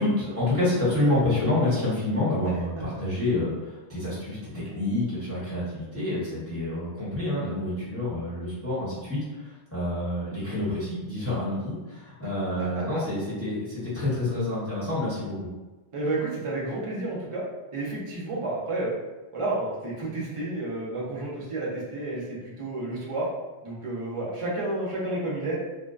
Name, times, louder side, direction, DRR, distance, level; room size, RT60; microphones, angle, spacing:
voice 1, 0.0-15.5, left 1 dB, 15° left, -10 dB, 0.8 m, -28 dB
voice 2, 12.6-13.0 15.9-17.4 17.7-18.9 19.3-23.3 23.6-25.6, right 2 dB, 45° right, -4 dB, 0.4 m, -31 dB
2.5 x 2.1 x 2.3 m, 1.1 s
omnidirectional pair, 1.2 m